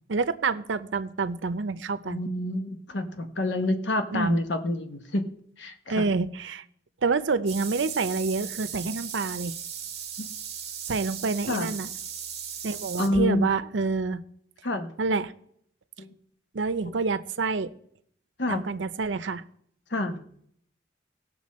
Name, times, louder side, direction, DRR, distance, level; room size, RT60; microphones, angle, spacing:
voice 1, 0.1-2.2 4.1-4.4 5.9-6.6 7.0-9.5 10.9-11.9 12.6-14.2 15.0-15.3 16.5-17.7 18.5-19.4, right 4 dB, 85° right, 12 dB, 0.6 m, -27 dB
voice 2, 2.0-5.3 5.6-6.1 10.2-10.3 11.5-11.7 13.0-13.5 14.6-14.9 16.0-16.1 16.8-16.9 18.4-18.6 19.9-20.2, left 1 dB, 75° left, 6 dB, 1.0 m, -28 dB
sound 1, 7.5-13.1, right 8 dB, 35° right, 1.5 m, -37 dB
18.0 x 6.8 x 4.2 m, 0.66 s
head